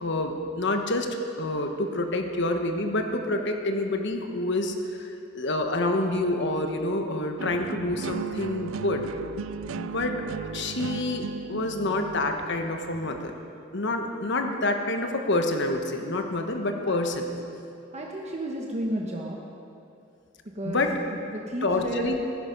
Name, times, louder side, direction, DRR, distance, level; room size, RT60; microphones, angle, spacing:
voice 1, 0.0-9.1 9.7-10.2 10.5-13.3 13.7-17.2 20.6-21.0 21.6-22.1, left 2 dB, 65° left, 4 dB, 1.2 m, -27 dB
sound 1, 7.4-13.4, right 5 dB, 90° right, 0.4 m, -36 dB
voice 2, 17.9-19.4 20.5-22.1, equal, 35° right, -1 dB, 1.2 m, -32 dB
15.5 x 11.0 x 5.4 m, 2.5 s
head